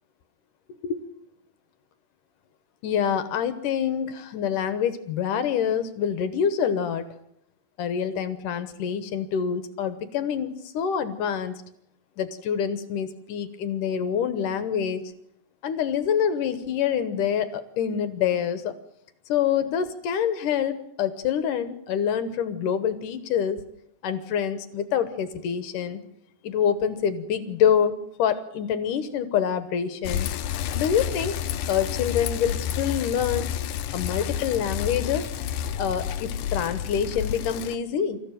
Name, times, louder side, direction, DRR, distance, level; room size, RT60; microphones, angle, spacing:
voice 1, 2.8-7.1 7.8-11.6 12.2-15.0 15.6-18.7 19.3-23.6 24.0-26.0 26.4-30.3 30.7-31.3 31.7-33.5 33.9-35.3 35.8-38.2, left 8 dB, 70° left, 11 dB, 2.1 m, -26 dB
Bicycle, 30.0-37.8, left 9 dB, 85° left, 1.8 m, -30 dB
25.5 x 14.5 x 9.1 m, 0.78 s
omnidirectional pair, 5.1 m